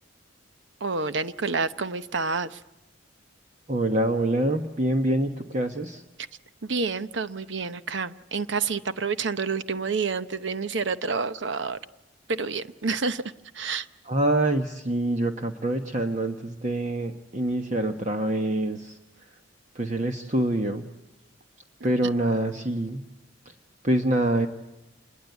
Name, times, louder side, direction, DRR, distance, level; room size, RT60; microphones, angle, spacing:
voice 1, 0.8-2.6 6.6-11.8 12.3-13.2 13.5-13.9, right 4 dB, 60° right, 13 dB, 0.8 m, -28 dB
voice 2, 3.7-6.0 14.0-19.0 19.7-20.8 21.8-23.0 23.8-24.5, right 1 dB, 35° right, 5 dB, 1.2 m, -25 dB
27.0 x 21.5 x 8.2 m, 0.96 s
head